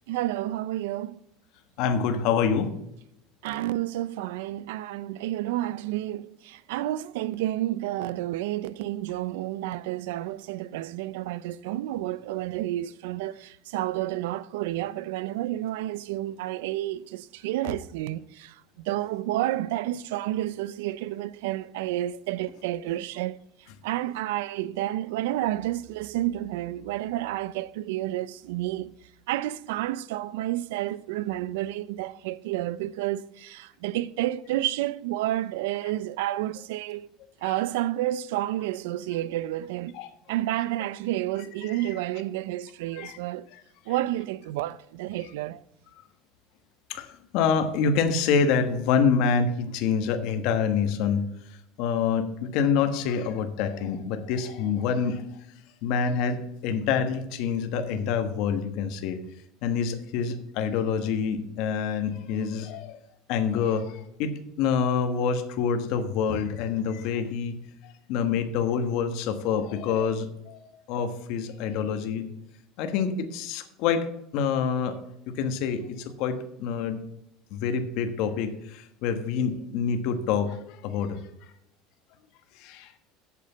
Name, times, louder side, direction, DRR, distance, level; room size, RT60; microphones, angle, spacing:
voice 1, 0.1-1.2 3.4-23.4 23.8-28.9 29.3-37.1 37.4-40.0 40.3-43.5 43.9-45.6, right 14 dB, 90° right, 0.4 m, -30 dB
voice 2, 1.8-2.7 37.5-37.6 39.9-40.1 41.6-41.8 42.9-43.2 43.5-43.6 46.9-51.2 51.8-55.2 55.8-59.2 59.6-63.0 63.3-67.6 68.1-70.6 70.9-72.3 72.8-74.1 74.3-75.0 75.3-77.0 77.5-80.6 80.8-81.2 82.6-82.9, left 6 dB, 60° left, 1.3 m, -26 dB
8.5 x 6.6 x 6.9 m
cardioid pair, 150°, 0 cm